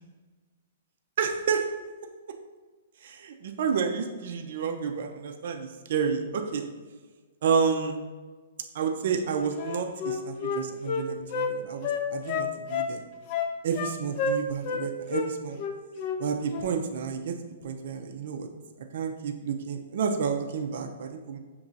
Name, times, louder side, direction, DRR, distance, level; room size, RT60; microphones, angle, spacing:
voice 1, 1.2-1.7 3.0-6.7 7.4-8.0 8.7-13.0 13.6-15.6 16.2-17.3 17.6-18.5 18.9-21.4, right 6 dB, 65° right, 5 dB, 0.4 m, -30 dB
Wind instrument woodwind instrument, 9.6-11.5 11.8-12.9 13.3-13.9 14.2-14.8 15.1-15.3 15.6-16.2 16.5-16.7, left 5 dB, 45° left, 0.5 m, -29 dB
6.1 x 2.9 x 2.6 m, 1.4 s
hypercardioid pair, 135°, 0 cm